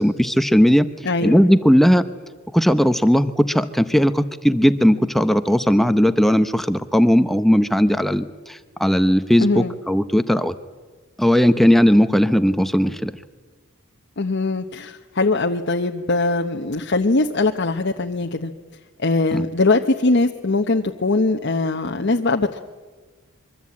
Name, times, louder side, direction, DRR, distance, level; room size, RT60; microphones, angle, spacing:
voice 1, 0.0-0.9 1.2-2.0 2.5-10.5 11.2-13.1 19.3-19.4, equal, ahead, 10 dB, 0.7 m, -17 dB
voice 2, 1.0-1.4 9.4-9.7 14.2-18.5 19.0-22.6, left 3 dB, 55° left, 3 dB, 1.0 m, -21 dB
25.5 x 23.5 x 8.6 m, 1.3 s
head